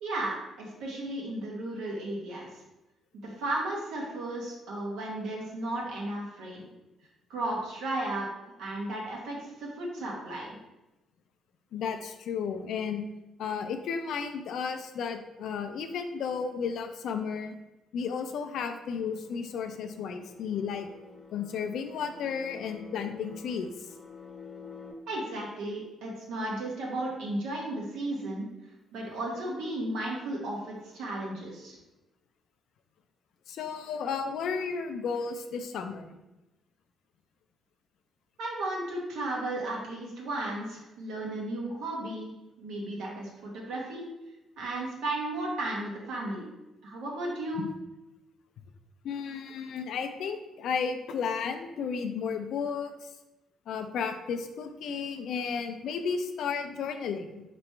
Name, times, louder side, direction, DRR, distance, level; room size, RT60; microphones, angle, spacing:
voice 1, 0.0-2.5 3.2-6.6 7.3-8.3 8.6-10.5 25.1-28.5 28.9-31.8 38.4-42.3 42.6-44.0 44.6-46.5 46.8-47.7, right 1 dB, 85° right, -2 dB, 1.2 m, -34 dB
voice 2, 11.7-13.0 13.4-17.6 17.9-20.9 21.3-23.9 33.5-36.2 47.6-47.7 49.0-53.1 53.7-57.4, left 6 dB, 75° left, 7 dB, 0.4 m, -33 dB
sound 1, 19.0-24.9, left 5 dB, 35° left, 0.7 m, -49 dB
3.4 x 3.0 x 4.4 m, 0.98 s
cardioid pair, 90°, 0 cm